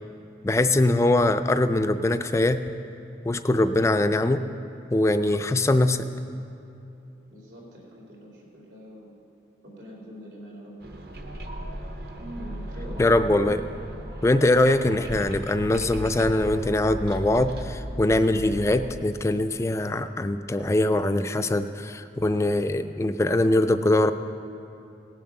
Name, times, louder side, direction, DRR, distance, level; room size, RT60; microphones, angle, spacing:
voice 1, 0.4-2.6 3.2-4.4 4.9-6.1 13.0-13.6 14.2-24.1, left 1 dB, 15° left, 10 dB, 0.3 m, -22 dB
voice 2, 7.3-9.2 9.6-11.3 12.3-13.0, equal, 85° right, -3 dB, 3.0 m, -45 dB
sound 1, 10.8-18.9, equal, 60° right, 1.0 m, -37 dB
17.5 x 7.4 x 5.8 m, 2.8 s
head